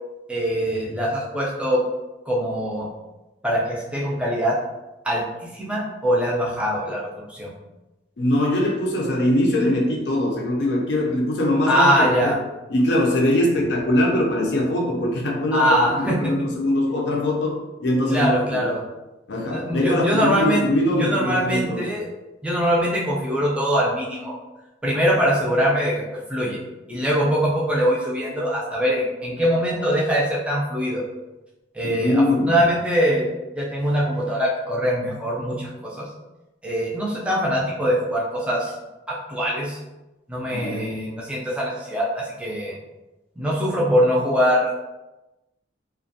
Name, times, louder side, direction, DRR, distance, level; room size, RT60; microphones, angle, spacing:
voice 1, 0.3-1.8 2.3-2.9 3.4-4.6 5.0-5.2 5.5-7.5 11.7-12.3 15.5-16.3 18.1-18.8 19.5-20.7 20.9-22.1 22.4-24.4 24.8-26.0 26.3-26.6 26.9-31.0 31.7-33.3 33.6-35.7 36.0-36.1 36.6-38.7 39.1-39.8 40.3-42.8 43.4-44.7, equal, 5° right, -5 dB, 0.4 m, -22 dB
voice 2, 8.2-12.3 12.7-18.7 19.3-21.9 31.8-32.6 40.5-41.0, left 1 dB, 65° left, -1 dB, 0.5 m, -22 dB
2.4 x 2.2 x 2.6 m, 1.0 s
head